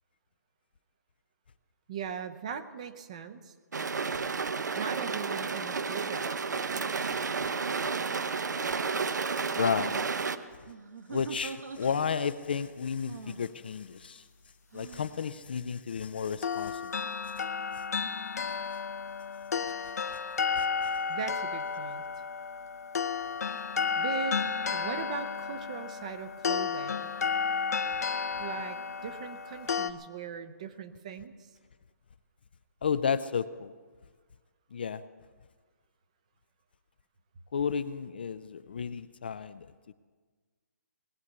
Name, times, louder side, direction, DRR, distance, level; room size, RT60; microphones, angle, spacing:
voice 1, 1.9-3.5 4.7-6.3 21.1-22.0 24.0-24.4 24.7-27.1 28.4-31.3, right 7 dB, 20° right, 10 dB, 0.6 m, -39 dB
sound 1, 3.7-10.4, right 5 dB, 80° right, 0.9 m, -31 dB
sound 2, 6.7-7.6 8.7-9.3 10.6-12.4 13.1-13.5 14.7-15.2, right 5 dB, 60° right, 1.6 m, -46 dB
voice 2, 9.6-10.0 11.1-14.2 14.7-17.0 20.6-20.9 32.8-33.7 34.7-35.0 37.5-39.7, left 6 dB, 35° left, 13 dB, 0.4 m, -32 dB
sound 3, 16.4-29.9, left 6 dB, 60° left, 0.7 m, -32 dB
19.0 x 8.7 x 8.1 m, 1.5 s
hypercardioid pair, 175°, 9 cm